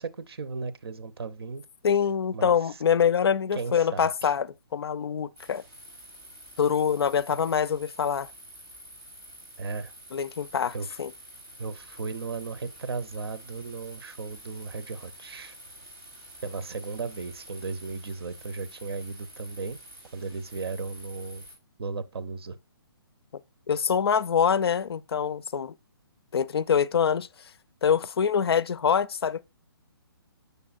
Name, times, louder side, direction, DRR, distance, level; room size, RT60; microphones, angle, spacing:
voice 1, 0.0-1.6 2.3-2.5 3.6-4.3 9.6-9.9 10.7-10.9 11.6-15.6 16.4-19.8 20.1-21.4 21.8-22.6, right 4 dB, 80° right, 0.8 m, -35 dB
voice 2, 1.8-5.6 6.6-8.3 10.1-11.1 23.7-25.7 26.3-27.3 27.8-29.4, left 7 dB, 80° left, 0.5 m, -25 dB
sound 1, 5.3-21.5, equal, 20° right, 3.9 m, -48 dB
6.8 x 6.6 x 2.4 m
hypercardioid pair, 175°, 13 cm